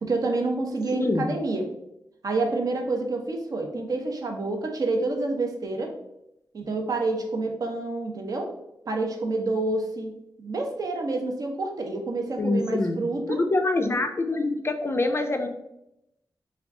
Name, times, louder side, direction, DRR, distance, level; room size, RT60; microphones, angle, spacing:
voice 1, 0.0-1.7 2.2-5.9 6.5-8.5 8.9-10.1 10.4-13.4, right 2 dB, 55° right, 3 dB, 0.6 m, -28 dB
voice 2, 0.9-1.3 12.4-13.0 13.3-15.5, left 2 dB, 35° left, 5 dB, 0.3 m, -25 dB
3.6 x 2.3 x 3.5 m, 0.83 s
wide cardioid pair, 145°, 8 cm